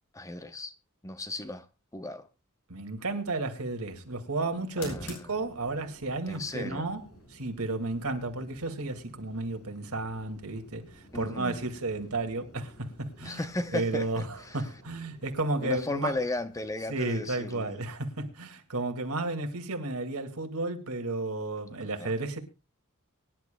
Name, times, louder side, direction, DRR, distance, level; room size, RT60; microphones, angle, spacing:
voice 1, 0.1-0.7 1.0-1.7 1.9-2.3 4.8-5.3 6.3-6.8 11.1-11.6 13.2-14.6 15.6-17.8 22.0-22.1, left 2 dB, 15° left, 0.8 m, -35 dB
voice 2, 2.7-7.0 7.3-13.5 13.7-16.1 16.9-22.4, right 2 dB, 80° right, 2.2 m, -33 dB
sound 1, 3.0-18.3, left 1 dB, 85° left, 6.0 m, -53 dB
24.0 x 11.0 x 2.3 m
head